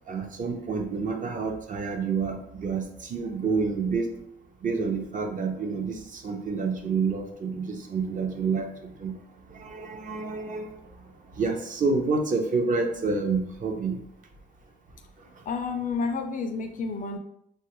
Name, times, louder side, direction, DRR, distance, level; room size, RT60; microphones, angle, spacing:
voice 1, 0.1-4.1 4.6-9.1 9.5-10.7 11.4-14.0, right 4 dB, 40° right, 4 dB, 0.5 m, -28 dB
voice 2, 15.5-17.2, left 4 dB, 40° left, 7 dB, 0.4 m, -30 dB
3.1 x 2.3 x 2.9 m, 0.72 s
cardioid pair, 90°, 20 cm